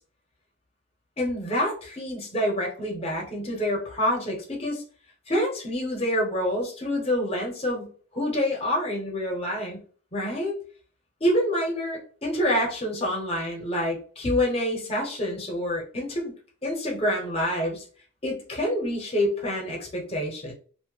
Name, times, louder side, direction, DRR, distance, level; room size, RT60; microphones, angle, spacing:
voice 1, 1.2-4.8 5.3-9.8 10.1-10.5 11.2-16.3 16.6-17.8 18.2-20.5, left 1 dB, 30° left, -1 dB, 1.0 m, -27 dB
2.8 x 2.1 x 3.2 m, 0.42 s
head